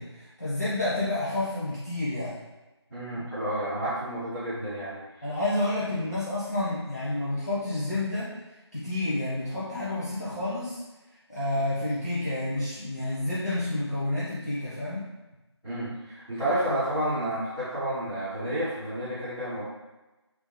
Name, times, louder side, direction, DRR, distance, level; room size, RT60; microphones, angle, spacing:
voice 1, 0.0-2.4 5.2-10.8 11.3-15.0, left 1 dB, 35° left, -10 dB, 0.6 m, -30 dB
voice 2, 2.9-5.3 15.6-19.6, right 1 dB, 10° left, -19 dB, 1.4 m, -30 dB
3.5 x 2.5 x 2.9 m, 1.1 s
figure-of-eight pair, 170°, 15 cm